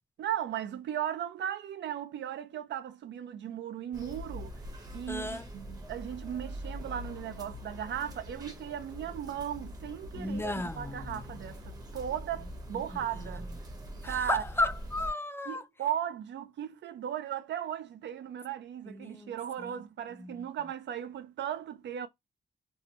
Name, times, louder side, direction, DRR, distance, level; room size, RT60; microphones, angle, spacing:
voice 1, 0.2-4.6 4.9-13.5 14.0-14.4 15.5-22.1, right 10 dB, 85° right, 0.5 m, -37 dB
sound 1, 3.9-15.1, equal, 20° right, 0.7 m, -43 dB
voice 2, 5.1-5.5 10.1-11.1 14.0-15.6 18.8-19.7 20.2-20.3, left 2 dB, 15° left, 0.4 m, -34 dB
2.7 x 2.1 x 2.6 m
wide cardioid pair, 115°, 18 cm